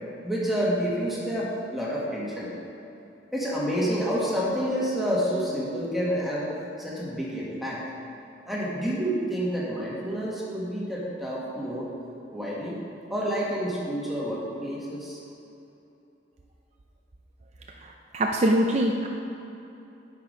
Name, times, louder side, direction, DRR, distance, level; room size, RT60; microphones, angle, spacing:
voice 1, 0.2-2.5 3.3-7.8 8.5-11.9 12.3-12.8 13.1-15.2, equal, ahead, -6 dB, 1.8 m, -29 dB
voice 2, 17.8-19.1, right 1 dB, 35° right, 1 dB, 0.6 m, -24 dB
11.5 x 6.0 x 5.2 m, 2.9 s
head